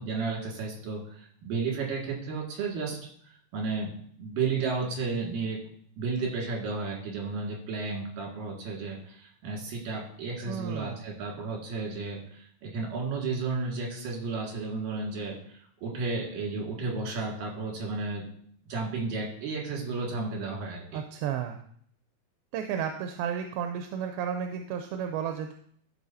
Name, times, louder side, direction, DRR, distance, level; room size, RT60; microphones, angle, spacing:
voice 1, 0.0-3.0 3.2-3.9 4.2-5.6 6.0-18.2 18.7-21.0, right 4 dB, 70° right, -2 dB, 3.6 m, -33 dB
voice 2, 10.5-11.0 20.9-21.6 22.5-25.5, right 8 dB, 85° right, 6 dB, 2.4 m, -32 dB
12.5 x 5.7 x 2.7 m, 0.62 s
omnidirectional pair, 4.2 m